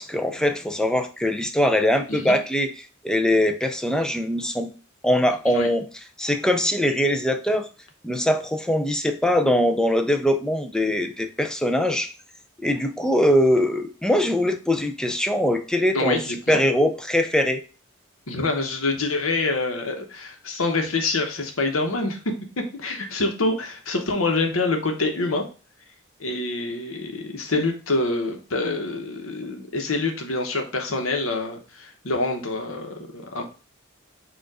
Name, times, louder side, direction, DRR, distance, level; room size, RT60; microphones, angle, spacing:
voice 1, 0.0-2.7 3.0-4.7 5.0-5.8 6.2-7.7 8.0-12.1 12.6-16.2 16.5-17.6, left 1 dB, 5° left, 6 dB, 0.4 m, -22 dB
voice 2, 15.9-16.6 18.3-22.2 22.8-25.5 26.2-33.5, left 3 dB, 75° left, 3 dB, 1.0 m, -26 dB
4.5 x 2.5 x 4.7 m, 0.35 s
head